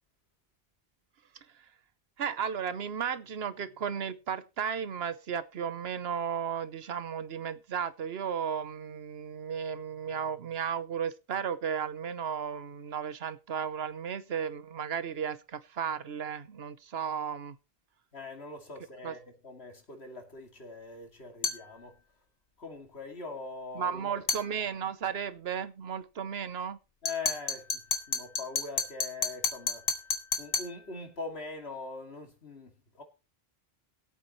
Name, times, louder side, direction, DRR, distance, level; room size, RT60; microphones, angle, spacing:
voice 1, 2.2-17.6 19.0-19.1 23.7-26.8, right 7 dB, 80° right, 1.1 m, -34 dB
voice 2, 18.1-22.0 22.6-24.2 27.0-29.8 30.4-33.0, left 3 dB, 80° left, 2.8 m, -42 dB
sound 1, 21.4-21.7 24.3-24.5 27.1-30.8, left 4 dB, 65° left, 1.8 m, -32 dB
22.0 x 8.5 x 3.1 m
omnidirectional pair, 1.0 m